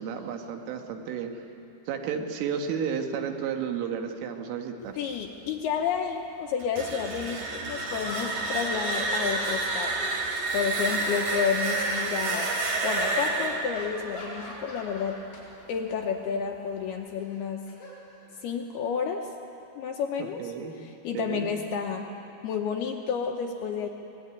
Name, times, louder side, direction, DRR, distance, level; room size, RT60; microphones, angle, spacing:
voice 1, 0.0-1.3 1.9-5.0 20.2-20.8 21.1-21.5, right 7 dB, 90° right, 4 dB, 4.1 m, -32 dB
voice 2, 5.0-10.0 10.5-12.5 12.8-15.2 15.7-17.7 18.4-19.3 19.8-20.4 20.8-22.1 22.4-23.9, left 7 dB, 75° left, 2 dB, 2.4 m, -30 dB
sound 1, 6.6-15.4, right 2 dB, 50° right, 3.4 m, -30 dB
sound 2, 7.1-7.2 7.9-10.6 10.9-11.9 12.3-12.5 13.0-13.2 13.7-15.4 15.7-16.0 17.2-18.6, left 2 dB, 45° left, 8.6 m, -42 dB
23.5 x 19.5 x 9.7 m, 2.8 s
omnidirectional pair, 5.6 m